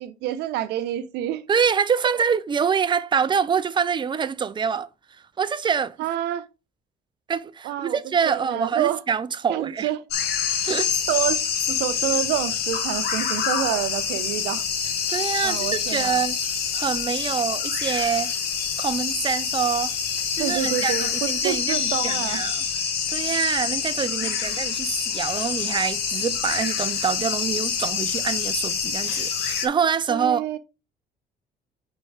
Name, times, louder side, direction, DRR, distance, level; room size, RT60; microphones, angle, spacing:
voice 1, 0.0-1.4 6.0-6.5 7.6-8.0 8.2-9.0 9.5-10.0 10.6-10.8 11.1-11.4 11.8-14.6 15.4-16.2 20.4-22.4 24.2-24.6 30.1-30.6, right 12 dB, 85° right, 0.8 m, -28 dB
voice 2, 1.5-4.9 5.4-6.0 7.3-9.9 10.7-10.9 15.1-16.4 16.7-18.3 18.8-19.9 20.3-22.6 23.1-30.6, right 6 dB, 25° right, 0.6 m, -25 dB
sound 1, 10.1-29.7, left 7 dB, 75° left, 1.6 m, -26 dB
5.2 x 4.4 x 4.9 m
cardioid pair, 110°, 17 cm